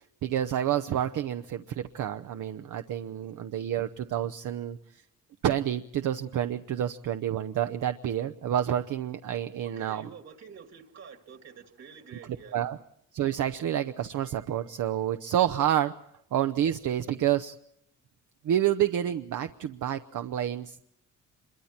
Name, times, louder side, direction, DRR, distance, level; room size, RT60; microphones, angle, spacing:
voice 1, 0.2-4.8 5.4-10.1 12.5-12.8 13.1-15.9 16.3-17.5 18.4-20.8, right 11 dB, 75° right, 8 dB, 0.8 m, -29 dB
voice 2, 9.6-12.6, right 6 dB, 55° right, 6 dB, 2.2 m, -48 dB
26.5 x 23.0 x 4.4 m, 0.75 s
cardioid pair, 120°, 31 cm